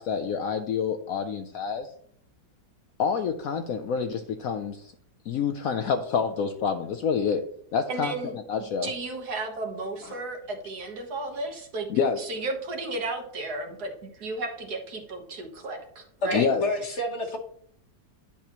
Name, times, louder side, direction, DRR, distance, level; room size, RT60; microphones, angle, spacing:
voice 1, 0.0-1.9 3.0-4.8 5.3-7.4 7.7-8.1 8.5-8.9 10.1-10.2 11.9-12.2 16.3-16.6, left 6 dB, 70° left, 7 dB, 0.9 m, -27 dB
voice 2, 7.9-8.3 8.8-11.9 12.2-16.5, right 2 dB, 65° right, 3 dB, 1.8 m, -34 dB
voice 3, 16.2-17.4, left 1 dB, 45° left, 3 dB, 1.3 m, -28 dB
10.5 x 6.1 x 2.9 m, 0.65 s
omnidirectional pair, 1.8 m